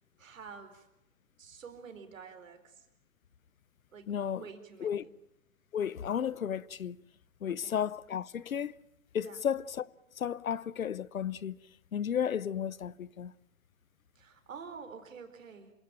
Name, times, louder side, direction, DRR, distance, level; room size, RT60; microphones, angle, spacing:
voice 1, 0.2-0.9 1.4-2.9 3.9-5.1 7.5-7.7 9.2-9.4 14.2-15.7, right 6 dB, 70° right, 4.4 m, -48 dB
voice 2, 4.1-4.5 4.8-5.1 5.7-7.0 7.4-8.8 9.1-9.9 10.2-11.6 11.9-13.3, left 8 dB, 80° left, 0.9 m, -33 dB
27.5 x 17.0 x 9.1 m
hypercardioid pair, 120°, 40 cm